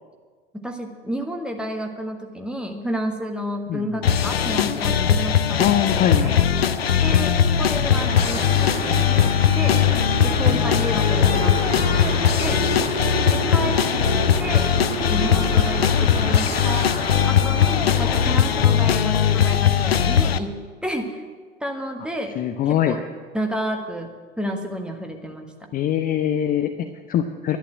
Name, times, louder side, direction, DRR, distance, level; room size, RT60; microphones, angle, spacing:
voice 1, 0.5-6.5 7.0-9.8 10.2-12.6 13.3-14.1 14.4-16.9 17.3-20.5 20.8-21.2 21.6-22.4 22.7-23.0 23.3-24.1 24.4-25.7 26.8-26.9, equal, 5° right, 3 dB, 1.6 m, -31 dB
sound 1, 4.0-20.4, left 9 dB, 75° left, 0.7 m, -20 dB
voice 2, 5.6-6.5 10.5-10.6 13.7-13.8 22.4-23.0 25.7-26.7 27.1-27.6, left 10 dB, 30° left, 8 dB, 0.7 m, -22 dB
sound 2, 6.7-17.7, right 3 dB, 70° right, 4.6 m, -32 dB
sound 3, 8.0-18.9, right 1 dB, 20° right, 5.3 m, -34 dB
11.5 x 11.0 x 7.6 m, 1.5 s
figure-of-eight pair, 80°, 31 cm